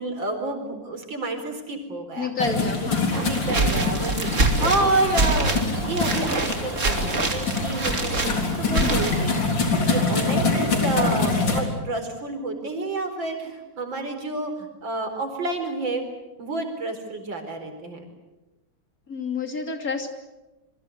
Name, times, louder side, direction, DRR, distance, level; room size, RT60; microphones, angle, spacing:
voice 1, 0.0-2.3 3.1-4.3 4.6-8.2 8.6-9.5 9.9-14.5 14.8-16.1 16.4-18.0, right 2 dB, 85° right, 6 dB, 5.0 m, -29 dB
voice 2, 2.2-3.2 8.7-9.0 19.1-20.1, left 4 dB, 50° left, 5 dB, 3.3 m, -29 dB
sound 1, 2.4-11.6, left 3 dB, 75° left, 4.5 m, -25 dB
sound 2, 3.1-9.6, right 2 dB, 40° right, 3.0 m, -26 dB
27.5 x 23.0 x 8.0 m, 1.1 s
omnidirectional pair, 2.0 m